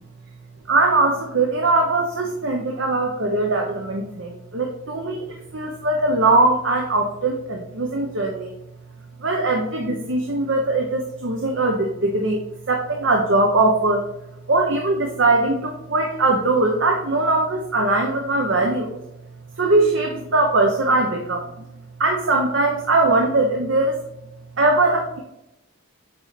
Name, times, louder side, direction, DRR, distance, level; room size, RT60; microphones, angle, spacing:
voice 1, 0.7-8.5 9.2-14.0 14.5-19.0 19.6-21.6 22.0-24.0 24.6-25.2, right 2 dB, 55° right, 2 dB, 0.9 m, -21 dB
7.6 x 4.3 x 4.0 m, 0.86 s
head